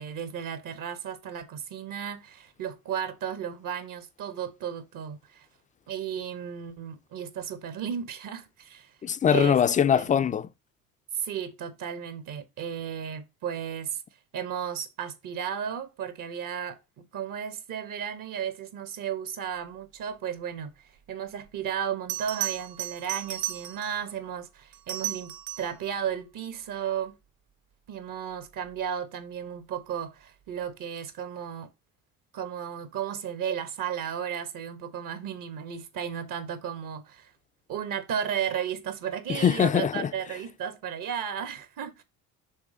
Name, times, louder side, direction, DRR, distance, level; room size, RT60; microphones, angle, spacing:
voice 1, 0.0-5.5 5.9-8.9 9.3-9.6 9.9-10.1 11.1-14.0 14.3-27.2 27.9-31.7 32.3-37.3 37.7-42.0, right 8 dB, 55° right, 1.3 m, -34 dB
voice 2, 9.0-10.5 39.3-40.1, left 8 dB, 20° left, 0.4 m, -22 dB
Bell, 21.5-21.6 22.1-24.0 24.7-25.8 28.5-28.7, right 13 dB, 75° right, 1.0 m, -34 dB
6.2 x 3.3 x 5.0 m
supercardioid pair, 80°, 38 cm